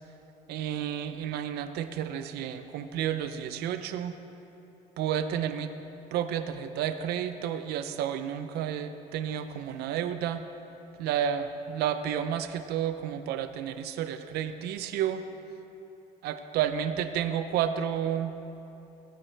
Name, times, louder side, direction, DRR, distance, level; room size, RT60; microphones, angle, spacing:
voice 1, 0.5-4.1 5.0-5.7 6.1-10.4 11.0-15.2 16.2-18.3, right 9 dB, 75° right, 10 dB, 0.6 m, -31 dB
15.5 x 13.0 x 3.4 m, 3.0 s
cardioid pair, 115°, 17 cm